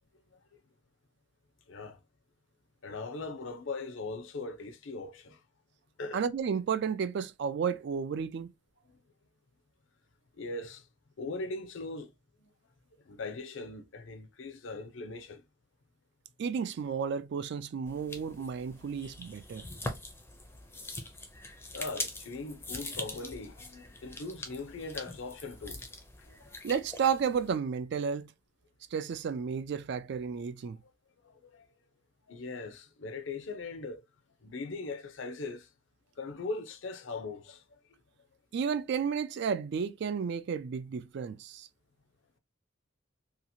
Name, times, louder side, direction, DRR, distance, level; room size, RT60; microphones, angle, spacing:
voice 1, 1.7-2.0 2.8-5.4 6.0-6.2 10.4-10.9 11.2-12.1 12.4-12.5 13.0-15.4 21.7-25.8 26.2-26.6 30.8-30.9 31.2-31.7 32.3-34.0 34.4-35.7 36.2-37.8, left 3 dB, 70° left, 0.6 m, -40 dB
voice 2, 6.1-8.5 16.4-19.6 26.6-28.3 28.9-30.8 38.5-41.7, right 6 dB, 55° right, 0.3 m, -32 dB
sound 1, 17.9-27.6, left 2 dB, 10° left, 0.5 m, -43 dB
2.8 x 2.4 x 2.6 m
head